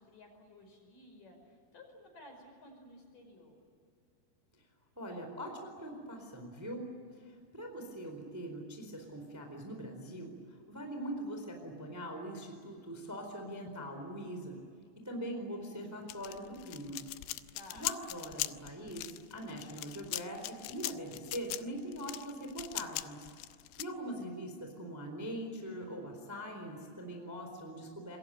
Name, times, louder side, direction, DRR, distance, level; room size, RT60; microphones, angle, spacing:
voice 1, 0.0-3.5 17.5-17.8, left 1 dB, 45° left, 3 dB, 6.8 m, -55 dB
voice 2, 4.9-6.8 7.1-7.2 7.5-10.3 10.7-14.6 15.0-17.0 17.7-23.3 23.8-28.2, equal, 5° right, 3 dB, 3.4 m, -42 dB
sound 1, 16.1-23.8, left 17 dB, 85° left, 3.2 m, -40 dB
27.5 x 23.0 x 9.2 m, 2.2 s
omnidirectional pair, 5.3 m